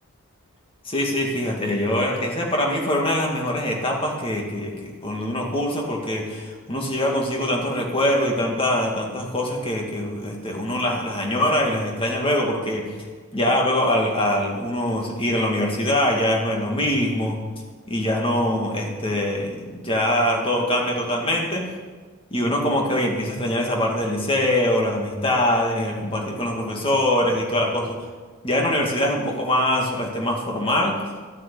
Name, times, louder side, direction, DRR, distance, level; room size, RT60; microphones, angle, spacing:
voice 1, 0.8-17.4 17.9-21.6 22.3-28.0 28.4-31.0, left 1 dB, 25° left, 0 dB, 2.3 m, -23 dB
13.0 x 9.6 x 8.5 m, 1.4 s
head